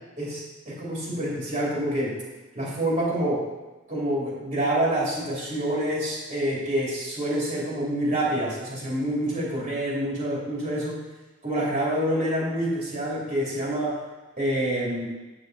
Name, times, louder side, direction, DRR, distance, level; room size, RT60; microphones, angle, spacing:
voice 1, 0.2-2.2 2.5-3.4 3.9-11.0 11.4-14.0 14.4-15.0, right 1 dB, 40° right, -5 dB, 2.8 m, -27 dB
9.0 x 7.0 x 4.0 m, 1.2 s
head